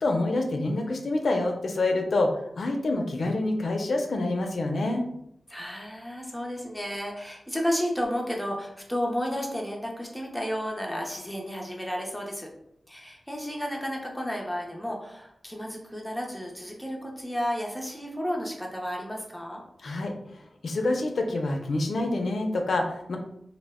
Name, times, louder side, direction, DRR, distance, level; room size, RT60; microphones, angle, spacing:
voice 1, 0.0-5.0 19.8-23.2, left 2 dB, 70° left, 3 dB, 0.4 m, -27 dB
voice 2, 5.5-12.5 12.9-19.6, equal, 5° left, -1 dB, 0.5 m, -32 dB
2.1 x 2.1 x 3.4 m, 0.75 s
wide cardioid pair, 105°, 0 cm